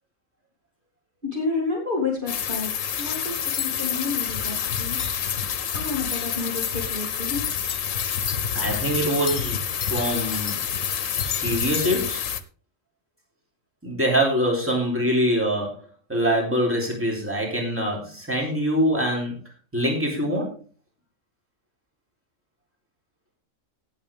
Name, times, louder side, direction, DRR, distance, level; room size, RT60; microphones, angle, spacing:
voice 1, 1.3-2.7 3.0-5.0 5.7-7.4, left 4 dB, 40° right, -2 dB, 3.2 m, -30 dB
sound 1, 2.3-12.4, left 8 dB, 75° left, 1.3 m, -27 dB
voice 2, 8.6-10.6 11.2-12.2 13.8-15.7 16.1-19.3 19.7-20.6, equal, 10° right, -1 dB, 3.8 m, -24 dB
17.5 x 8.0 x 3.6 m, 0.37 s
omnidirectional pair, 1.4 m